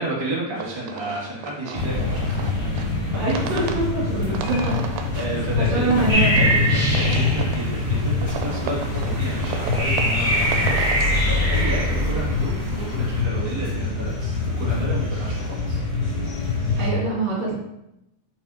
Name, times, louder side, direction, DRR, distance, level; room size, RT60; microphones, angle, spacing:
voice 1, 0.0-2.3 2.7-2.8 3.1-3.2 4.4-4.8 5.1-15.8, right 2 dB, 15° right, -6 dB, 0.9 m, -31 dB
sound 1, 0.6-11.3, right 7 dB, 90° right, 2.4 m, -35 dB
sound 2, 1.7-16.9, left 3 dB, 50° left, 2.8 m, -24 dB
voice 2, 3.1-4.8 5.6-6.4 11.8-12.1 16.8-17.5, right 3 dB, 55° right, -6 dB, 3.8 m, -25 dB
sound 3, 6.1-13.2, right 1 dB, 35° right, 1.5 m, -26 dB
6.7 x 5.6 x 2.7 m, 0.84 s
omnidirectional pair, 4.0 m